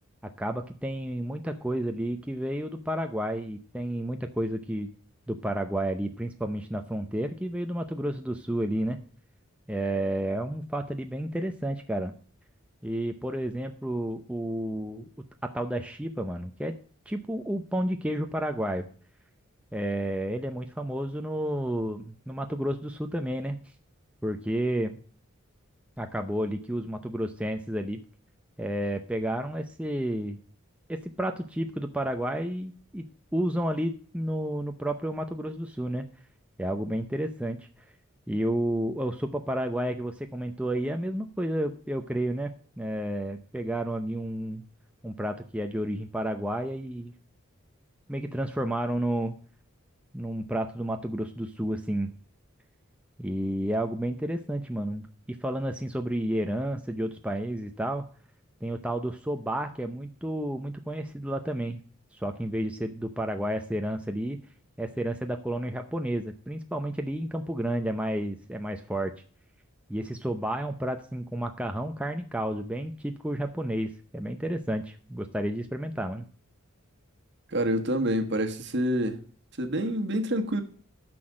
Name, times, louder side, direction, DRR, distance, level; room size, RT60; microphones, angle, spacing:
voice 1, 0.4-4.9 5.3-9.0 9.7-12.1 12.8-15.1 15.4-16.8 17.1-18.8 19.7-23.6 24.2-25.0 26.0-28.0 28.6-30.4 30.9-33.0 33.3-36.1 36.6-37.6 38.3-42.5 42.8-44.6 45.0-47.1 48.1-49.3 50.1-52.1 53.2-58.0 58.6-61.8 62.2-64.4 64.8-69.1 69.9-76.2, right 1 dB, 5° right, 0.6 m, -31 dB
voice 2, 77.5-79.2 79.6-80.6, right 1 dB, 55° right, 1.4 m, -27 dB
9.9 x 6.1 x 6.3 m
head